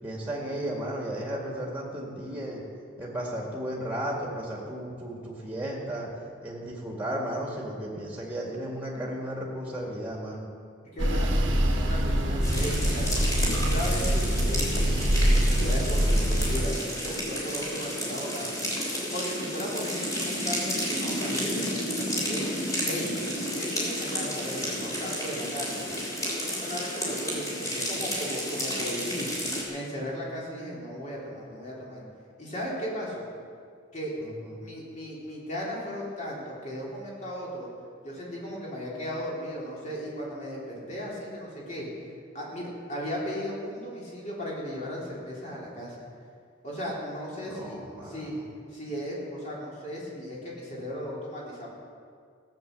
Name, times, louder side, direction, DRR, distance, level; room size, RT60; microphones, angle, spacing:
voice 1, 0.0-2.6 3.0-6.1 6.4-10.5 34.2-34.6 47.4-48.5, right 1 dB, 10° right, -2 dB, 2.1 m, -34 dB
voice 2, 10.9-13.2 13.7-18.7 19.1-22.4 22.8-23.2 23.5-25.8 26.4-29.3 29.7-32.0 32.4-33.3 33.9-34.1 34.6-37.7 38.0-41.9 42.3-46.0 46.6-47.8 48.0-48.3 48.7-51.7, equal, 35° left, -5 dB, 3.5 m, -36 dB
sound 1, 11.0-16.7, equal, 70° right, 1.3 m, -24 dB
sound 2, 12.4-29.6, equal, 15° left, 3.2 m, -31 dB
16.5 x 8.3 x 6.8 m, 2.2 s
head